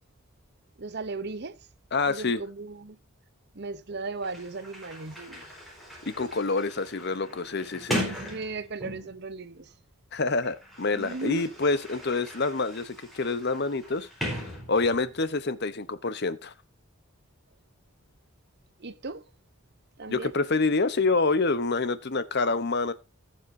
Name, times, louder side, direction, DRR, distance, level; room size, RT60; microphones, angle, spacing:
voice 1, 0.8-1.6 2.1-3.0 3.5-5.5 8.0-9.7 10.9-11.5 18.8-19.2 20.0-20.4, right 3 dB, 50° right, 0.8 m, -36 dB
voice 2, 1.9-2.4 6.0-8.4 10.1-16.5 20.1-22.9, left 3 dB, 50° left, 0.9 m, -27 dB
Sliding door, 3.9-4.0 4.2-9.3 10.2-15.2, equal, ahead, 4.7 m, -38 dB
17.0 x 7.4 x 2.7 m
head